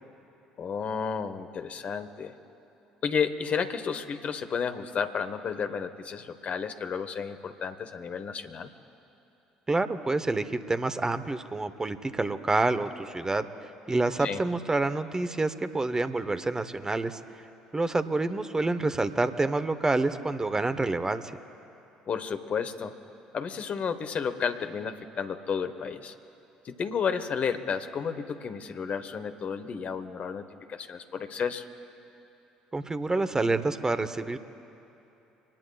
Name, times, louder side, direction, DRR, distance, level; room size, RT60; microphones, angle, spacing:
voice 1, 0.6-2.4 3.0-8.7 14.2-14.4 22.1-22.9 23.3-26.1 26.6-31.7, left 6 dB, 45° left, 9 dB, 1.2 m, -32 dB
voice 2, 9.7-13.5 13.9-17.2 17.7-21.3 32.7-34.4, right 2 dB, 20° right, 10 dB, 1.0 m, -28 dB
25.5 x 19.5 x 2.4 m, 3.0 s
figure-of-eight pair, 55°, 3 cm